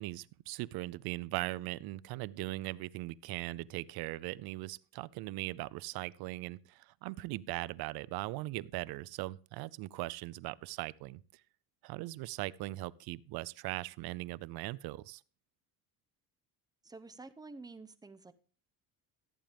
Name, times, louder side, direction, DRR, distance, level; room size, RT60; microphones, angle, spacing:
voice 1, 0.0-11.2 11.8-15.2, right 18 dB, 65° right, 0.6 m, -39 dB
voice 2, 16.8-18.3, right 3 dB, 10° right, 0.6 m, -49 dB
14.0 x 8.8 x 3.4 m
cardioid pair, 155°, 40 cm